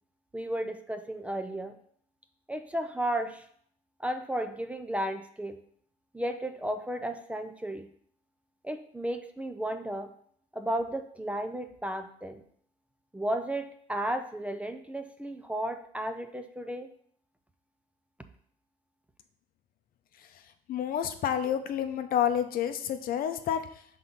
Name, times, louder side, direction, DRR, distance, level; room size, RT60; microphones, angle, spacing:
voice 1, 0.3-1.8 2.5-3.4 4.0-5.6 6.1-7.9 8.6-10.1 10.5-12.4 13.1-16.9, right 1 dB, 10° right, 7 dB, 0.5 m, -33 dB
voice 2, 20.7-23.8, left 9 dB, 60° left, 8 dB, 0.7 m, -29 dB
5.5 x 3.9 x 5.9 m, 0.62 s
cardioid pair, 110°, 17 cm